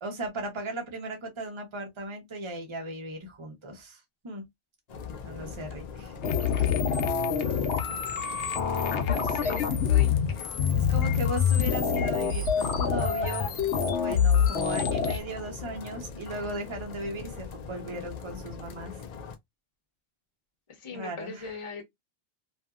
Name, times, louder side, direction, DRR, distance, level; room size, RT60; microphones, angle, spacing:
voice 1, 0.0-4.4 5.2-6.1 10.7-13.5 14.0-18.9 20.9-21.5, right 1 dB, 30° right, 0.8 m, -37 dB
sound 1, 4.9-19.4, left 6 dB, 60° left, 0.4 m, -41 dB
sound 2, 6.2-15.2, left 7 dB, 80° left, 0.9 m, -26 dB
voice 2, 8.7-10.5 20.7-21.8, left 5 dB, 30° left, 0.8 m, -41 dB
2.8 x 2.6 x 2.3 m
omnidirectional pair, 1.2 m